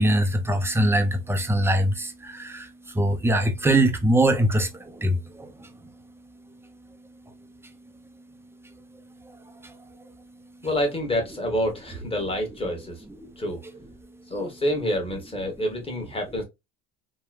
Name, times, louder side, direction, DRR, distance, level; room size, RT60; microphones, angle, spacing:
voice 1, 0.0-2.7 2.9-4.7 5.0-5.5, right 1 dB, 10° right, 0.5 m, -22 dB
voice 2, 10.6-13.1 13.4-13.6 14.3-16.4, equal, 15° left, 1.3 m, -27 dB
3.0 x 2.2 x 2.3 m
supercardioid pair, 90°, 33 cm